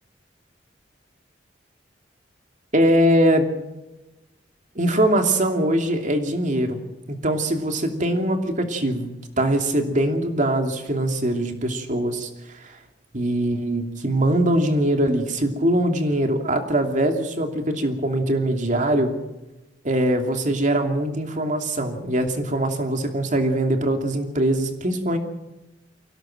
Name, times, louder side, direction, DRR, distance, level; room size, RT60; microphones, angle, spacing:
voice 1, 2.7-3.5 4.7-6.8 7.2-12.8 13.1-19.2 19.8-25.2, right 1 dB, 45° right, 5 dB, 2.8 m, -22 dB
24.0 x 17.5 x 7.7 m, 1.0 s
head